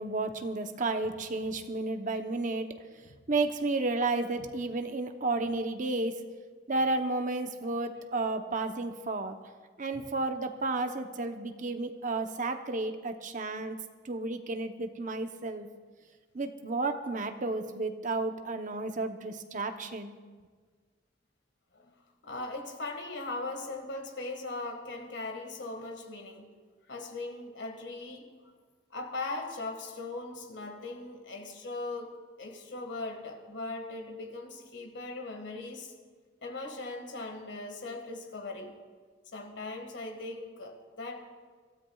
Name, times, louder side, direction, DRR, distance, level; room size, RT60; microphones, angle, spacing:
voice 1, 0.0-2.7 3.3-6.2 6.7-9.4 9.8-13.8 14.0-15.7 16.3-20.2, right 3 dB, 45° right, 7 dB, 0.8 m, -32 dB
voice 2, 22.2-26.5 26.9-28.5 28.9-35.9 36.4-38.8 39.3-41.3, left 2 dB, 70° left, 4 dB, 1.7 m, -39 dB
25.5 x 13.0 x 2.3 m, 1.5 s
head